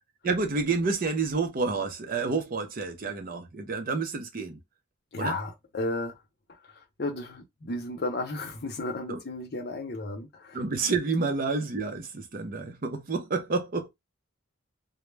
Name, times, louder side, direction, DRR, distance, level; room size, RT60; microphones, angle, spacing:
voice 1, 0.2-4.6 5.2-5.3 9.1-9.2 10.5-13.9, right 4 dB, 40° right, 0.5 m, -29 dB
voice 2, 5.1-6.1 7.0-10.6 10.9-11.0, left 2 dB, 50° left, 0.6 m, -33 dB
2.2 x 2.0 x 3.1 m
head